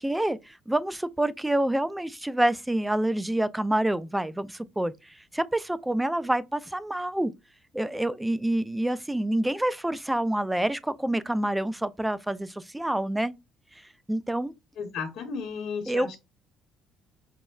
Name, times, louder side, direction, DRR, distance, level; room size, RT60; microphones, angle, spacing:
voice 1, 0.0-7.3 7.7-13.3 14.1-14.5 15.9-16.2, right 1 dB, 10° right, 0.3 m, -27 dB
voice 2, 14.8-16.2, left 5 dB, 60° left, 0.9 m, -34 dB
5.2 x 2.1 x 2.3 m
supercardioid pair, 90°, 0 cm